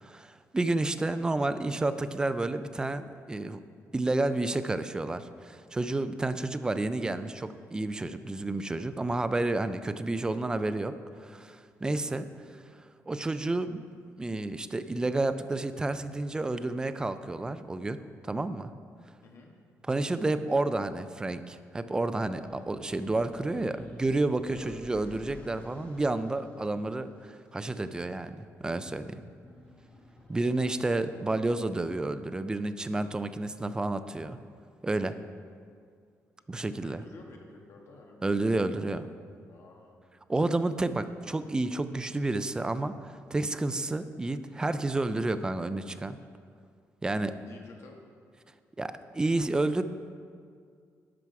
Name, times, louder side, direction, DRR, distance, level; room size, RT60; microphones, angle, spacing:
voice 1, 0.0-3.6 3.9-10.9 11.2-12.3 13.1-13.8 14.2-18.7 19.9-28.4 28.6-29.2 30.3-34.4 34.8-35.2 36.5-37.0 38.2-39.1 40.3-46.2 47.0-47.3 48.8-49.8, right 2 dB, 15° right, 11 dB, 0.3 m, -30 dB
voice 2, 11.9-12.3 19.2-19.5 24.5-24.7 36.6-38.3 39.5-40.0 47.5-47.9, left 3 dB, 50° left, 1 dB, 1.3 m, -51 dB
sound 1, 22.4-31.9, left 1 dB, 25° left, 1.1 m, -53 dB
11.0 x 6.1 x 4.6 m, 2.2 s
cardioid pair, 150°, 6 cm